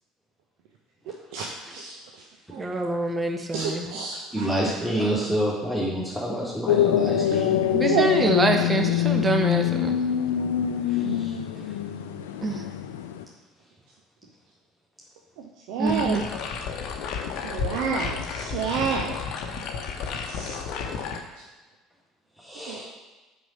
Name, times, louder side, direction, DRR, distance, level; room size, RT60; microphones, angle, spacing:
voice 1, 1.3-1.8 4.3-7.6 10.9-11.7 18.5-18.8 22.4-22.9, right 1 dB, ahead, -6 dB, 1.9 m, -29 dB
voice 2, 2.6-3.9 7.7-9.9 12.4-12.6 15.8-16.2, right 3 dB, 25° right, 4 dB, 1.1 m, -25 dB
voice 3, 3.5-4.2 7.9-8.0 11.0-11.2 15.7-16.2 17.4-19.1 20.3-20.6 22.7-22.8, right 6 dB, 60° right, 1 dB, 0.7 m, -28 dB
sound 1, 6.7-13.2, left 10 dB, 70° left, 0.5 m, -24 dB
sound 2, 15.8-21.2, left 5 dB, 55° left, 0.9 m, -32 dB
6.1 x 5.4 x 6.3 m, 1.2 s
figure-of-eight pair, 60°, 0 cm